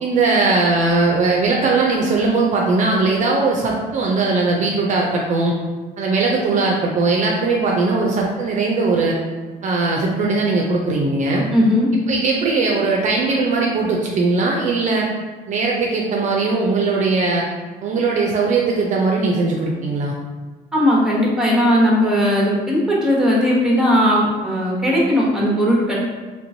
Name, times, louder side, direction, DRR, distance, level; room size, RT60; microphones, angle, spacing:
voice 1, 0.0-5.5 6.0-9.2 9.6-11.5 12.1-15.1 15.5-17.5 17.8-20.1, right 3 dB, 45° right, -1 dB, 0.4 m, -19 dB
voice 2, 11.5-11.9 20.7-25.9, equal, 5° right, -4 dB, 0.9 m, -17 dB
3.2 x 2.9 x 2.6 m, 1.3 s
cardioid pair, 110°, 17 cm